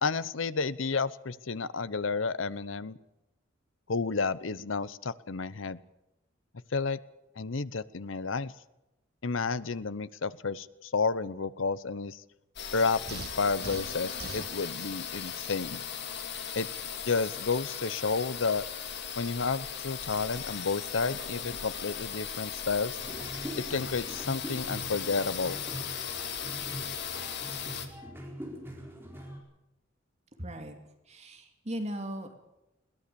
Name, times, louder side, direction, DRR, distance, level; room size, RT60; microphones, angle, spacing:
voice 1, 0.0-3.0 3.9-5.8 6.7-7.0 7.4-8.5 9.2-12.2 12.7-15.8 16.5-16.7 17.0-18.6 19.2-22.9 23.7-25.6, left 4 dB, 85° left, 16 dB, 0.9 m, -31 dB
sound 1, 12.6-27.9, left 7 dB, 60° left, 2.4 m, -38 dB
sound 2, 13.1-14.5, right 5 dB, 50° right, 0.7 m, -42 dB
sound 3, 23.0-29.4, equal, 10° right, 4.5 m, -42 dB
voice 2, 30.4-30.8 31.1-32.3, equal, 35° right, 5 dB, 2.6 m, -37 dB
21.5 x 18.0 x 7.0 m, 0.91 s
head